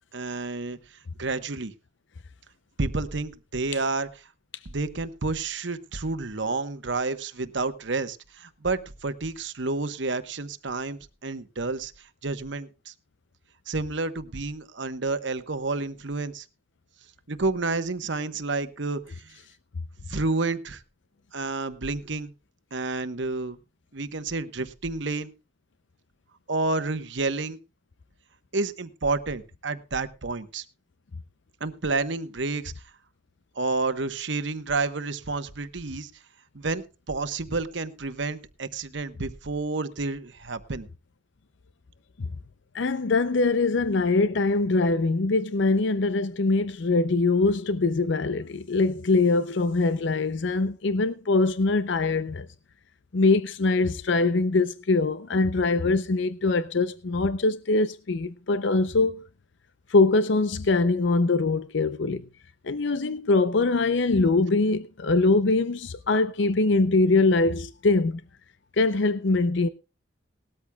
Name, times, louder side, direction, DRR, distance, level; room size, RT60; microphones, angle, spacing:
voice 1, 0.1-0.8 1.2-1.7 2.8-4.1 4.6-11.9 12.2-12.9 13.7-16.4 17.3-19.3 20.1-20.8 21.3-22.3 22.7-23.6 23.9-25.3 26.5-27.6 28.5-30.6 31.6-32.7 33.6-36.1 36.5-40.9, right 3 dB, 65° right, 1.0 m, -30 dB
voice 2, 42.7-52.5 53.1-59.2 59.9-62.2 62.6-68.2 68.8-69.7, left 3 dB, 60° left, 0.5 m, -23 dB
19.0 x 13.0 x 2.3 m
head